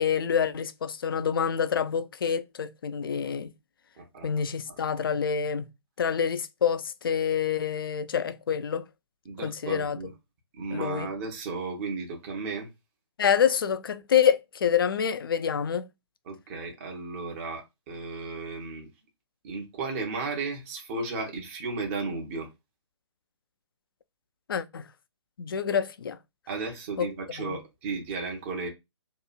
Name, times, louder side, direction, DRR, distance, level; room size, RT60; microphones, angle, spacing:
voice 1, 0.0-3.5 4.2-5.7 6.0-8.8 9.4-10.0 10.7-11.1 13.2-15.9 24.5-24.8 25.4-26.2 27.0-27.1 27.4-27.6, left 7 dB, 50° left, 0.4 m, -27 dB
voice 2, 4.0-4.3 9.2-10.1 10.6-12.7 16.3-18.9 19.4-22.5 26.5-28.7, right 4 dB, 30° right, 0.8 m, -34 dB
2.8 x 2.4 x 2.3 m
figure-of-eight pair, 135°, 15 cm